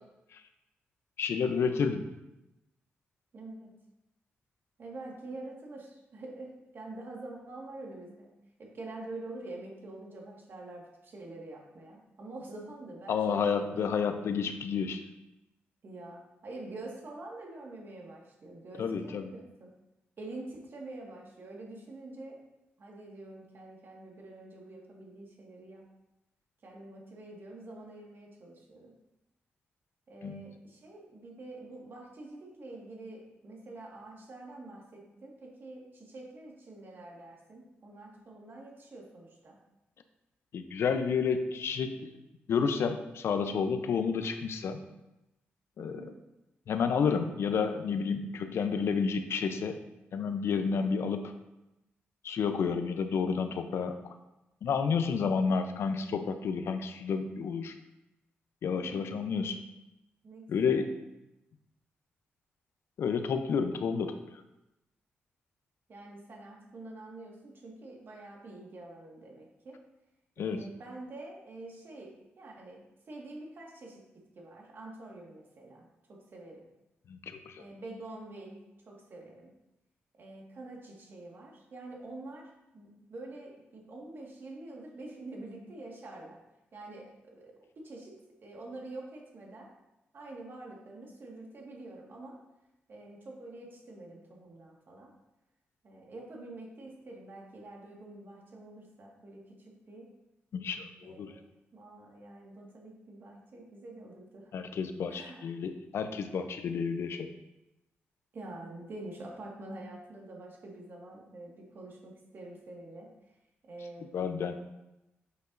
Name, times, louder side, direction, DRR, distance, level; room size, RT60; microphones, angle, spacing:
voice 1, 1.2-2.0 13.1-15.0 18.8-19.3 30.2-30.4 40.5-42.1 42.5-44.8 45.8-46.1 46.7-49.8 50.1-51.3 52.2-54.1 54.6-57.7 58.6-59.6 60.5-60.9 63.0-64.2 70.4-70.7 77.1-77.6 100.5-101.3 104.5-107.3 114.1-114.5, left 6 dB, 75° left, 8 dB, 0.6 m, -30 dB
voice 2, 3.3-3.8 4.8-8.3 8.6-13.9 15.8-19.7 20.2-22.4 22.8-25.9 26.6-28.9 30.1-39.6 45.8-46.2 52.6-53.0 58.7-59.3 60.2-60.8 65.9-69.8 70.4-74.0 74.3-76.7 77.6-79.5 80.2-86.4 86.7-89.7 90.1-92.4 92.9-95.1 95.8-100.1 101.0-101.4 101.7-104.5 105.1-105.5 108.3-113.1 113.6-114.1, right 2 dB, 55° right, -1 dB, 1.6 m, -46 dB
7.8 x 5.4 x 2.6 m, 0.93 s
cardioid pair, 70°, 4 cm